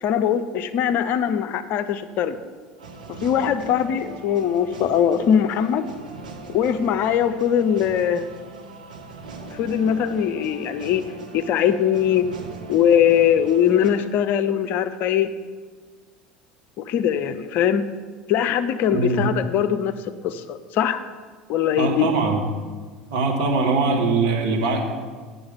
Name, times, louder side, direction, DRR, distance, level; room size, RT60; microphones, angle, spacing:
voice 1, 0.0-2.4 3.2-5.9 6.5-8.3 9.5-11.0 11.3-12.3 12.7-15.3 16.8-17.8 18.3-19.9 20.2-21.0 21.5-22.1, left 9 dB, 45° left, 11 dB, 0.5 m, -21 dB
sound 1, 2.8-13.9, right 3 dB, 75° right, 1.0 m, -40 dB
voice 2, 18.9-19.2 21.8-22.4 23.1-24.8, right 3 dB, 60° right, 1 dB, 1.7 m, -21 dB
8.6 x 5.7 x 7.0 m, 1.5 s
figure-of-eight pair, 70°, 4 cm